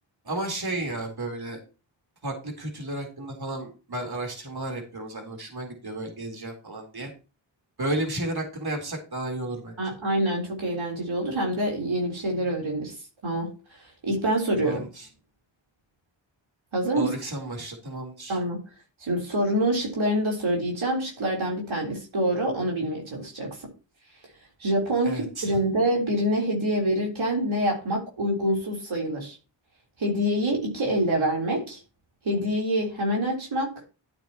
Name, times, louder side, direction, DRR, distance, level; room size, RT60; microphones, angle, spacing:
voice 1, 0.3-1.6 2.2-7.1 7.8-9.8 14.6-15.1 17.0-18.4 25.0-25.5, right 1 dB, 50° right, 2 dB, 3.8 m, -33 dB
voice 2, 9.8-12.9 13.2-13.5 14.0-14.8 16.7-17.1 18.3-18.6 19.0-23.7 24.6-29.4 30.0-31.8 32.2-33.7, right 1 dB, 80° right, -1 dB, 3.8 m, -26 dB
12.5 x 8.7 x 3.0 m, 0.33 s
cardioid pair, 50°, 47 cm